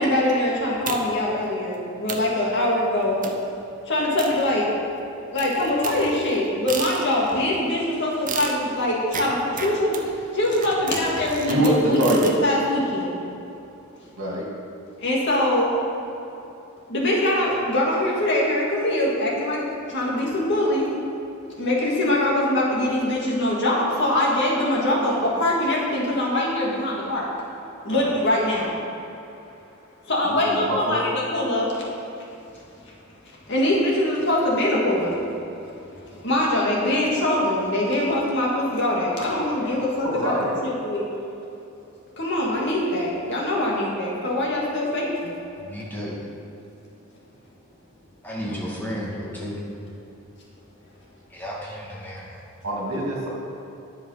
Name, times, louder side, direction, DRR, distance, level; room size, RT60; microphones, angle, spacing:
voice 1, 0.0-3.2 3.8-4.7 5.3-13.2 15.0-15.7 16.9-20.9 21.6-27.3 27.8-28.8 30.1-31.7 33.5-35.2 35.7-41.0 42.2-45.3, left 1 dB, 55° left, -4 dB, 2.2 m, -23 dB
sound 1, 0.9-1.3 1.7-1.8 2.1-2.4 3.2-3.5 4.2-4.9 5.4-7.4 8.3-12.4, right 5 dB, 40° right, 0.8 m, -34 dB
voice 2, 11.5-12.3 14.2-14.5 27.9-28.0 30.3-31.0 39.6-40.7 52.6-53.3, right 1 dB, 70° right, -3 dB, 2.5 m, -24 dB
voice 3, 45.6-46.1 48.2-49.6 51.3-52.4, equal, 10° left, -5 dB, 1.9 m, -33 dB
10.5 x 6.9 x 5.8 m, 2.9 s
head